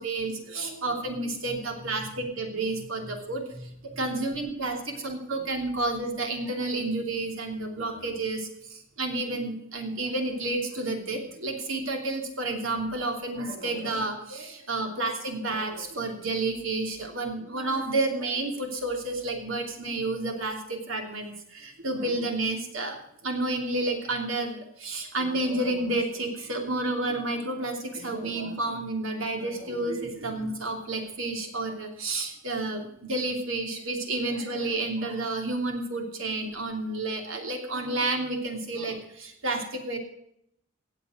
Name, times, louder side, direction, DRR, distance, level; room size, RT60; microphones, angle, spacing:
voice 1, 0.0-8.5 9.0-23.0 23.2-40.0, right 2 dB, 70° right, 3 dB, 2.9 m, -30 dB
17.0 x 7.7 x 6.6 m, 0.73 s
head